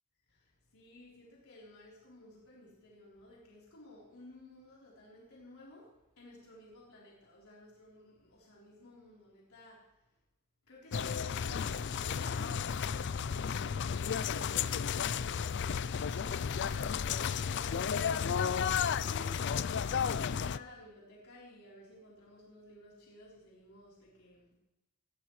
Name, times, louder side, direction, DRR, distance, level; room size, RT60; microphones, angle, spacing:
voice 1, 0.3-10.2 10.7-24.5, left 1 dB, 85° left, -6 dB, 3.9 m, -55 dB
sound 1, 10.9-20.6, left 7 dB, 55° left, 0.4 m, -33 dB
20.0 x 15.0 x 3.2 m, 0.96 s
head